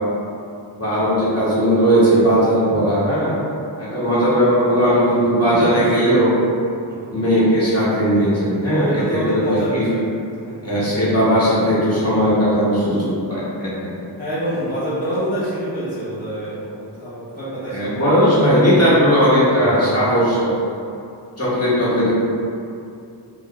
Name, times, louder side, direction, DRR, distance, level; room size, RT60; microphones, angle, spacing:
voice 1, 0.8-3.3 3.8-6.3 7.1-9.9 10.6-13.9 17.7-20.5 21.4-22.1, equal, 35° left, -11 dB, 1.2 m, -17 dB
voice 2, 5.5-6.3 6.9-7.0 8.7-10.1 10.4-10.5 14.2-18.0 18.5-19.0 19.5-20.0, right 1 dB, 20° left, -13 dB, 0.9 m, -26 dB
2.4 x 2.3 x 3.8 m, 2.5 s
wide cardioid pair, 45°, 45 cm